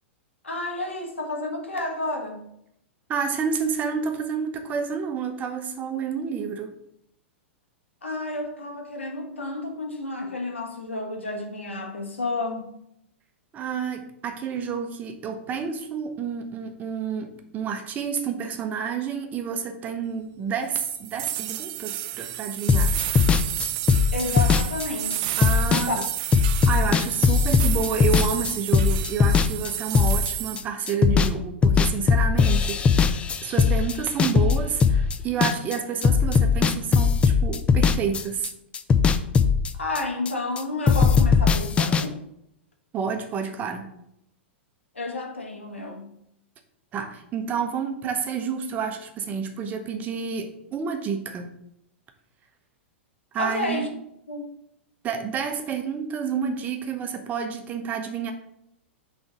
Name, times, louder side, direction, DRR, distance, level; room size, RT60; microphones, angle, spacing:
voice 1, 0.4-2.5 8.0-12.7 24.1-26.0 39.7-42.2 44.9-46.1 53.4-53.9 54.3-54.5, left 2 dB, 75° left, 2 dB, 1.4 m, -31 dB
voice 2, 3.1-6.7 13.5-23.0 25.4-26.0 26.7-38.5 42.9-43.9 46.9-51.5 53.3-53.9 55.0-58.3, right 6 dB, 25° right, 5 dB, 0.9 m, -29 dB
sound 1, 20.7-30.6, right 14 dB, 45° right, 0.4 m, -31 dB
sound 2, 22.7-30.6 30.9-31.4 31.6-35.8 36.0-38.5 38.7-40.6 40.9-42.0, left 5 dB, 15° left, 0.4 m, -20 dB
6.3 x 3.5 x 6.0 m, 0.76 s
figure-of-eight pair, 100°, 7 cm